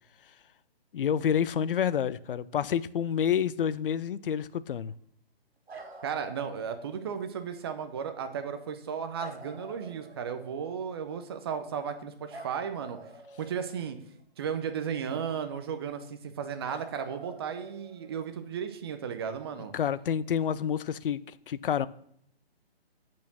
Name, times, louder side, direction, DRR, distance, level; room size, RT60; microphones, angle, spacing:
voice 1, 0.9-4.9 19.7-21.2 21.5-21.9, left 8 dB, 60° left, 0.5 m, -28 dB
sound 1, 5.7-7.1 9.2-10.8 12.3-14.2 16.6-18.4 20.4-20.5, right 3 dB, 85° right, 2.0 m, -48 dB
voice 2, 6.0-13.0 13.4-14.0 14.4-19.7, right 7 dB, 25° right, 0.6 m, -35 dB
8.4 x 4.5 x 6.0 m
hypercardioid pair, 155°, 31 cm